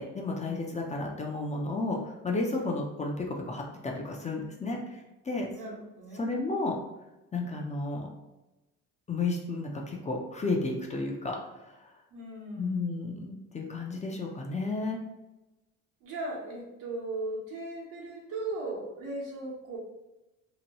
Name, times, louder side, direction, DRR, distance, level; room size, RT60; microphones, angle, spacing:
voice 1, 0.0-5.5 6.2-6.8 7.3-8.1 9.1-11.9 12.6-15.0, left 3 dB, 20° left, 0 dB, 0.5 m, -32 dB
voice 2, 5.5-6.3 12.1-13.0 16.0-19.8, right 2 dB, 85° right, -3 dB, 1.0 m, -38 dB
2.8 x 2.2 x 2.8 m, 1.0 s
cardioid pair, 90°, 33 cm